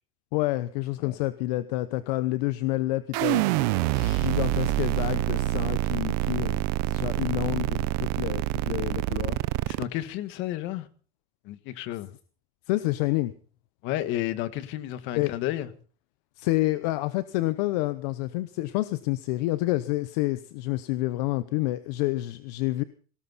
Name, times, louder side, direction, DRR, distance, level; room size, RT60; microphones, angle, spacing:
voice 1, 0.3-9.4 12.7-13.3 15.1-15.3 16.4-22.8, left 18 dB, 85° left, 0.8 m, -28 dB
sound 1, 3.1-9.8, right 18 dB, 80° right, 0.8 m, -26 dB
voice 2, 9.7-10.9 11.5-12.1 13.8-15.7, left 14 dB, 70° left, 1.7 m, -32 dB
18.5 x 17.5 x 4.1 m
supercardioid pair, 105°, 20 cm